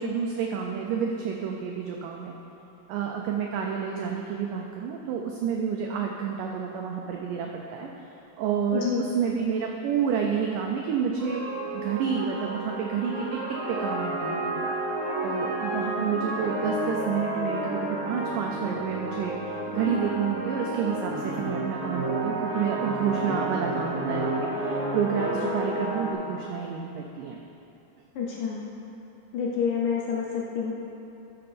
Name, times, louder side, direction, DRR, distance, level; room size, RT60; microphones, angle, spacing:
voice 1, 0.0-2.4 2.9-7.9 8.4-11.4 11.7-13.4 13.7-14.8 15.2-27.4, right 7 dB, 90° right, 1 dB, 1.8 m, -29 dB
voice 2, 8.7-9.0 28.2-28.7 29.3-30.7, left 6 dB, 75° left, -2 dB, 2.0 m, -28 dB
sound 1, 11.2-26.1, right 2 dB, 60° right, 0.9 m, -31 dB
13.0 x 6.5 x 4.3 m, 3.0 s
omnidirectional pair, 4.5 m